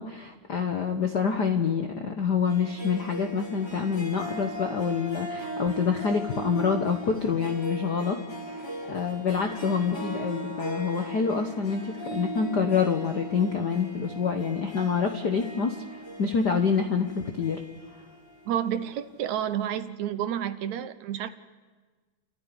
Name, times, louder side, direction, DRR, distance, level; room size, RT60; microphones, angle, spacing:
voice 1, 0.0-8.2 8.5-15.8 16.2-17.6, left 6 dB, 65° left, 5 dB, 1.0 m, -27 dB
Harp, 2.5-19.2, right 1 dB, 10° left, 2.2 m, -38 dB
voice 2, 18.5-21.3, right 10 dB, 75° right, 11 dB, 2.2 m, -30 dB
29.5 x 14.0 x 9.8 m, 1.4 s
omnidirectional pair, 3.5 m